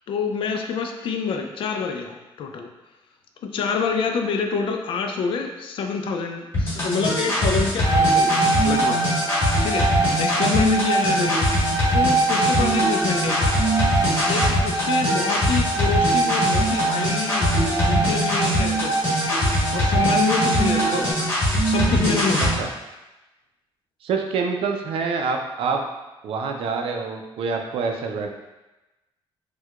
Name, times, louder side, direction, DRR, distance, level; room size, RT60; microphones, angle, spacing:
voice 1, 0.1-2.7 3.4-13.6 14.3-19.2 19.7-21.3 21.6-22.7, left 5 dB, 65° left, 4 dB, 0.4 m, -27 dB
sound 1, 6.5-22.5, equal, 25° left, 1.3 m, -22 dB
sound 2, 7.8-21.1, right 2 dB, 35° right, 1.2 m, -24 dB
voice 2, 24.0-25.8 26.2-28.3, right 5 dB, 75° right, 3 dB, 0.4 m, -26 dB
4.4 x 2.2 x 2.4 m, 1.0 s
cardioid pair, 125°, 10 cm